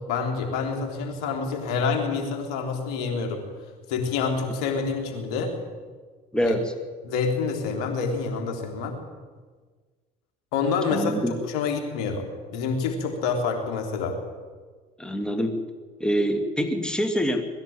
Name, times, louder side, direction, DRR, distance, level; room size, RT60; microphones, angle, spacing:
voice 1, 0.1-3.4 3.9-5.5 6.4-6.5 7.0-9.0 10.5-11.1 11.5-12.2 12.5-14.2, left 5 dB, 80° left, 3 dB, 3.6 m, -27 dB
voice 2, 6.3-6.7 10.9-11.4 15.0-15.6 16.0-17.4, equal, 5° left, 6 dB, 2.6 m, -25 dB
21.5 x 14.0 x 8.8 m, 1.5 s
supercardioid pair, 80°, 20 cm